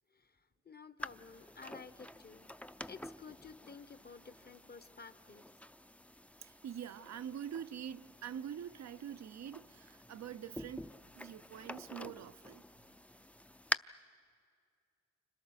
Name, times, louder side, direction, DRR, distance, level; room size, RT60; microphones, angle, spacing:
voice 1, 0.6-2.5 2.9-5.4, left 5 dB, 35° left, 1.1 m, -52 dB
sound 1, 1.0-13.8, left 1 dB, 5° left, 0.6 m, -47 dB
voice 2, 6.4-12.6, right 9 dB, 65° right, 0.6 m, -45 dB
29.5 x 26.0 x 6.6 m
supercardioid pair, 45°, 29 cm